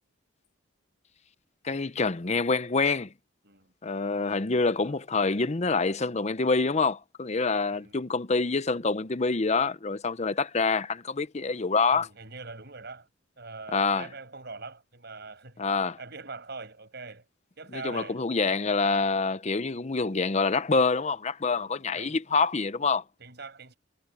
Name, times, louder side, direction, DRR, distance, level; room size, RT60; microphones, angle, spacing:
voice 1, 1.6-3.1 3.8-12.1 13.7-14.1 15.6-16.0 17.7-23.0, left 4 dB, 35° left, 0.7 m, -26 dB
voice 2, 7.7-8.1 11.9-13.1 13.4-15.7 16.0-17.2 17.6-18.2 21.5-22.2 23.2-23.8, right 3 dB, 55° right, 6.5 m, -43 dB
head